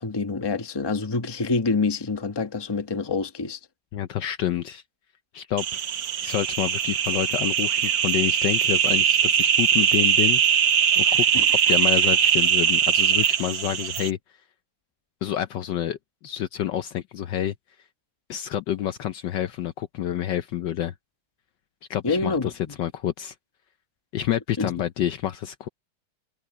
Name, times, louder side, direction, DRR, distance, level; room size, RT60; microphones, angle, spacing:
voice 1, 0.0-3.6 11.3-11.4 22.0-22.7 24.6-24.7, left 4 dB, 15° left, 0.9 m, -26 dB
voice 2, 3.9-4.8 5.3-5.6 6.2-10.7 11.0-11.3 11.7-14.2 15.2-17.5 18.3-20.9 21.9-22.5 22.8-23.3 24.1-25.7, left 11 dB, 70° left, 1.2 m, -28 dB
sound 1, 5.6-14.1, right 8 dB, 65° right, 1.8 m, -21 dB
omnidirectional pair, 2.3 m